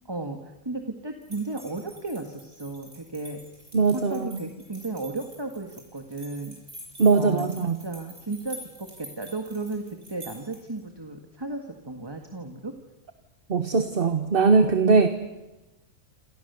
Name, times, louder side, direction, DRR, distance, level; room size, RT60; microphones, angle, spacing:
voice 1, 0.1-3.4 3.9-6.6 7.1-9.8 10.1-12.7, right 2 dB, 15° right, 5 dB, 1.8 m, -34 dB
sound 1, 1.2-10.8, right 1 dB, 60° right, 8.3 m, -47 dB
voice 2, 3.7-4.3 7.0-7.8 13.5-15.1, right 4 dB, 40° right, 8 dB, 1.4 m, -20 dB
28.0 x 27.0 x 6.9 m, 1.0 s
omnidirectional pair, 1.5 m